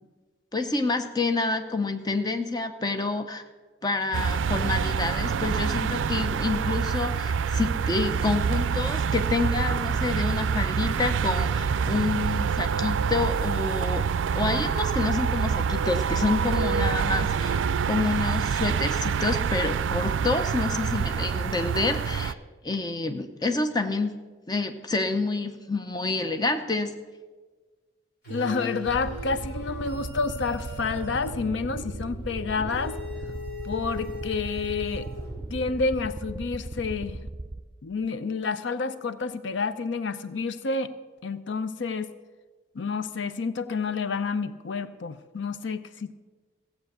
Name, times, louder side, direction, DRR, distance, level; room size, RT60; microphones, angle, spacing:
voice 1, 0.5-3.4 3.8-14.1 14.3-17.6 17.8-22.4 22.6-24.2 24.5-26.9, left 3 dB, 20° left, 7 dB, 0.7 m, -28 dB
sound 1, 4.1-22.3, right 6 dB, 90° right, 0.4 m, -26 dB
sound 2, 28.2-35.7, left 1 dB, 60° left, 4.5 m, -39 dB
voice 2, 28.3-33.0 33.6-35.1 35.5-37.3 37.8-40.9 41.2-42.1 42.7-46.1, left 4 dB, 80° left, 13 dB, 0.6 m, -29 dB
sound 3, 28.9-37.6, right 1 dB, 25° right, 0.6 m, -37 dB
15.5 x 8.1 x 6.6 m, 1.4 s
head